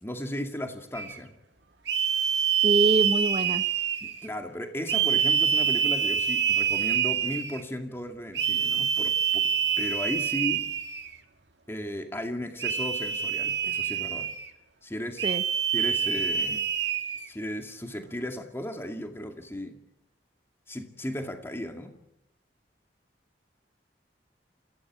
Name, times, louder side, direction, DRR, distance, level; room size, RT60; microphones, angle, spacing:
voice 1, 0.0-1.4 4.0-9.5 9.8-10.7 11.7-14.3 14.8-15.3 15.7-16.6 17.3-19.8 20.7-22.0, left 1 dB, 15° left, 2.2 m, -35 dB
sound 1, 0.9-1.2 1.9-4.3 4.9-7.6 8.3-11.1 12.6-14.5 15.2-17.3, right 8 dB, 90° right, 2.3 m, -26 dB
voice 2, 2.6-3.6 15.2-15.4, right 2 dB, 35° right, 0.8 m, -25 dB
28.5 x 17.0 x 7.4 m
head